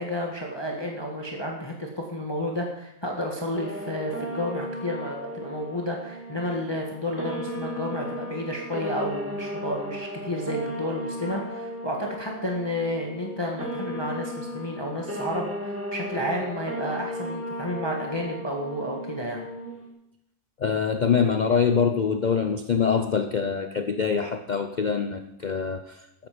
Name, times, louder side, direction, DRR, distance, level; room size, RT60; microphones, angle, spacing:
voice 1, 0.0-19.5, equal, 15° left, 0 dB, 1.5 m, -31 dB
sound 1, 3.5-19.9, equal, 10° right, 1.5 m, -35 dB
voice 2, 20.6-26.3, left 6 dB, 75° left, 8 dB, 0.4 m, -24 dB
13.5 x 8.8 x 5.1 m, 0.85 s
omnidirectional pair, 1.6 m